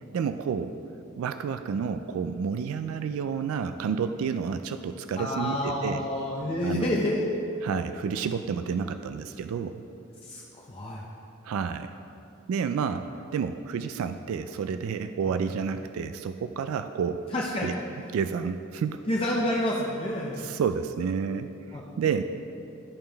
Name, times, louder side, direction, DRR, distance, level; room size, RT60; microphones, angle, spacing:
voice 1, 0.1-0.8 1.2-6.0 6.6-6.9 7.6-9.8 11.4-11.9 12.5-13.0 13.3-17.2 17.6-17.8 18.1-19.0 20.4-22.2, right 6 dB, 85° right, 9 dB, 0.3 m, -30 dB
voice 2, 5.2-7.4 10.2-11.0 15.3-15.4 17.3-17.7 19.1-20.5 21.7-21.8, left 1 dB, 25° left, -4 dB, 0.6 m, -29 dB
13.0 x 5.2 x 3.4 m, 2.8 s
head